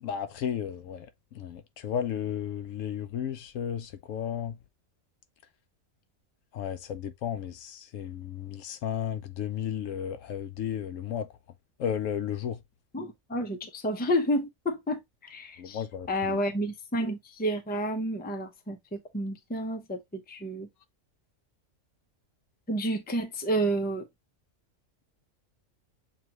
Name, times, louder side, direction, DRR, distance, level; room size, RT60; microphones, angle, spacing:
voice 1, 0.0-1.1 1.3-4.6 6.5-11.3 11.8-12.6 15.6-16.4, left 9 dB, 75° left, 1.0 m, -33 dB
voice 2, 12.9-20.7 22.7-24.1, equal, 10° left, 0.5 m, -30 dB
7.3 x 2.5 x 2.9 m
omnidirectional pair, 1.4 m